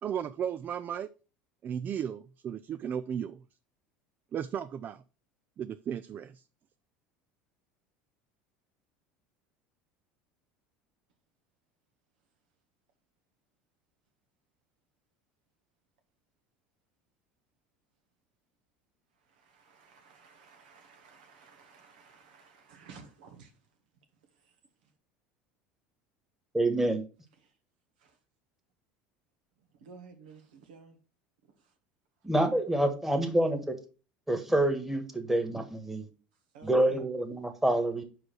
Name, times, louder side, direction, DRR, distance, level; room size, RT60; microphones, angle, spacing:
voice 1, 0.0-1.1 1.6-3.4 4.3-5.0 5.6-6.4, right 8 dB, 40° right, 0.4 m, -35 dB
voice 2, 19.3-23.5 28.0-28.2 29.8-31.0 36.5-37.0, right 5 dB, 80° right, 1.6 m, -54 dB
voice 3, 26.5-27.0 32.2-33.8 34.3-36.1 36.6-38.0, right 1 dB, 5° right, 1.5 m, -27 dB
4.9 x 4.8 x 6.1 m
hypercardioid pair, 90°, 5 cm